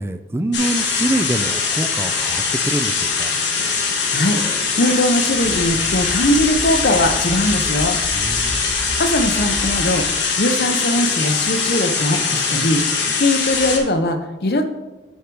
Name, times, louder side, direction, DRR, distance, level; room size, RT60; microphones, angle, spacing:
voice 1, 0.0-3.4 8.1-8.6, right 1 dB, 15° right, 10 dB, 0.3 m, -25 dB
sound 1, 0.5-13.8, left 5 dB, 85° left, 1.4 m, -21 dB
voice 2, 4.8-8.0 9.0-10.1 10.4-12.8 13.2-14.7, left 1 dB, 60° left, 6 dB, 0.7 m, -20 dB
sound 2, 5.4-10.3 13.5-13.9, equal, 10° left, 0.7 m, -33 dB
6.6 x 6.4 x 4.6 m, 1.1 s
head